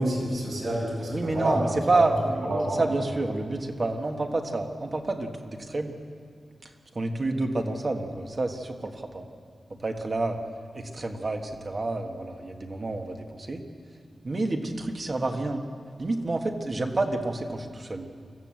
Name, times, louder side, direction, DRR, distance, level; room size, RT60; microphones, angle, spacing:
voice 1, 0.0-2.0 2.4-2.8, right 1 dB, 70° right, -3 dB, 6.5 m, -28 dB
voice 2, 1.1-5.9 6.6-9.2 9.8-10.4 10.7-13.6 14.2-15.6 16.0-18.1, right 2 dB, 35° right, 4 dB, 1.5 m, -29 dB
25.0 x 15.0 x 7.7 m, 2.2 s
wide cardioid pair, 180°, 0 cm